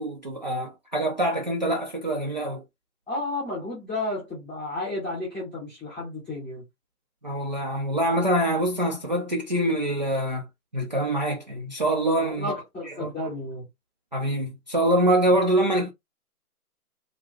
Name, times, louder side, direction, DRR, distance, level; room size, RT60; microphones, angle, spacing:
voice 1, 0.0-2.6 7.2-10.5 10.7-12.5 12.9-13.1 14.1-15.9, right 1 dB, 30° right, 0.6 m, -25 dB
voice 2, 3.1-6.6 12.2-13.6, left 2 dB, ahead, 0.9 m, -32 dB
3.6 x 2.9 x 3.1 m
hypercardioid pair, 160°, 46 cm